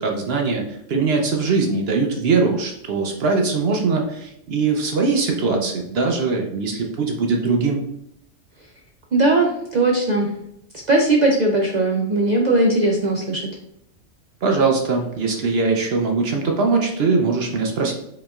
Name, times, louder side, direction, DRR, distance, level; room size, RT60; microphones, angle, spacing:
voice 1, 0.0-7.8 14.4-17.9, right 4 dB, 60° right, 2 dB, 0.7 m, -21 dB
voice 2, 9.1-10.3 10.9-13.4, right 2 dB, 80° right, -1 dB, 0.4 m, -18 dB
4.8 x 3.0 x 2.3 m, 0.77 s
omnidirectional pair, 1.3 m